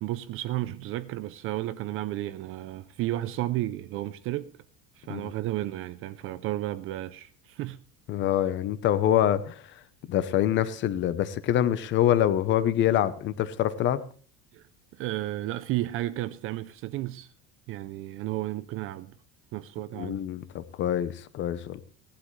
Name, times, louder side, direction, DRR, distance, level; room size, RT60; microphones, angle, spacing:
voice 1, 0.0-4.5 5.0-7.8 14.5-14.6 14.9-17.3 17.7-19.1 19.5-20.2, right 15 dB, 40° right, 0.5 m, -33 dB
voice 2, 8.1-9.8 10.1-14.0 19.9-21.8, left 11 dB, 35° left, 0.8 m, -25 dB
16.5 x 11.5 x 3.2 m
cardioid pair, 175°, 34 cm